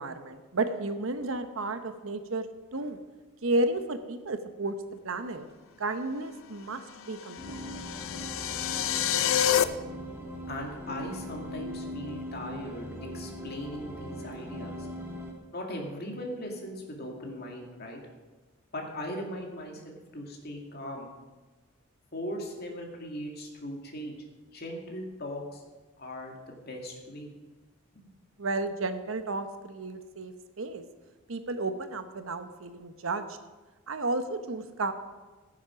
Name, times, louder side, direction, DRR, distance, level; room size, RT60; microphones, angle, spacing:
voice 1, 0.0-2.5 2.7-3.0 3.4-4.7 5.0-5.4 5.8-6.8 7.1-7.6 28.4-30.8 31.3-33.3 33.9-34.9, right 2 dB, 75° right, 9 dB, 1.0 m, -32 dB
sound 1, 7.1-9.6, left 10 dB, 75° left, 0.6 m, -28 dB
sound 2, 7.4-15.3, equal, 10° right, 1.8 m, -40 dB
voice 2, 10.5-14.9 15.5-18.0 18.7-21.1 22.1-24.2 24.5-25.6 26.0-27.3, left 1 dB, 50° left, 1 dB, 2.2 m, -39 dB
15.0 x 7.3 x 5.8 m, 1.2 s
head